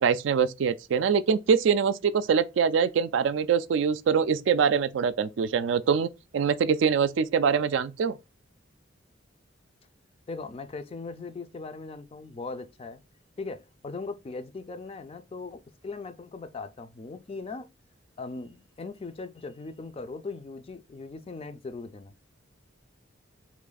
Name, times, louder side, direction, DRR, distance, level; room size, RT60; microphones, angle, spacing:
voice 1, 0.0-8.1, right 6 dB, 70° right, 0.3 m, -24 dB
voice 2, 10.3-13.0 13.4-17.7 18.2-22.1, left 3 dB, 30° left, 0.4 m, -39 dB
3.4 x 3.1 x 3.8 m
head